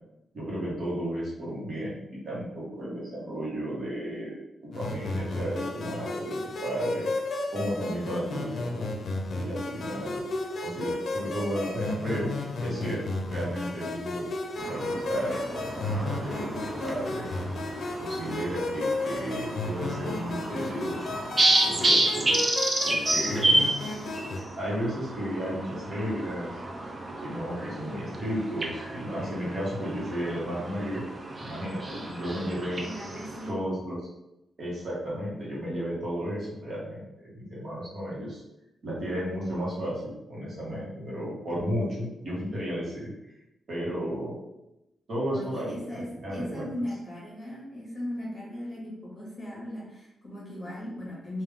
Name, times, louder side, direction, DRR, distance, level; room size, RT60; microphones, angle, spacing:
voice 1, 0.3-7.1 7.5-8.9 9.3-10.2 10.6-14.2 14.7-17.3 18.0-22.3 22.8-23.6 24.6-26.5 27.2-31.0 31.4-32.8 33.5-34.0 34.6-38.4 38.8-40.0 40.3-43.1 43.7-44.4 45.1-46.7, equal, 50° right, -6 dB, 1.4 m, -33 dB
sound 1, 4.7-24.4, left 2 dB, 60° left, 0.6 m, -33 dB
sound 2, 14.6-33.5, right 2 dB, 30° right, 0.5 m, -30 dB
voice 2, 23.2-23.6 32.8-33.7 45.3-51.4, left 1 dB, 15° left, -6 dB, 1.5 m, -38 dB
3.5 x 2.6 x 3.5 m, 0.89 s
wide cardioid pair, 140°, 0 cm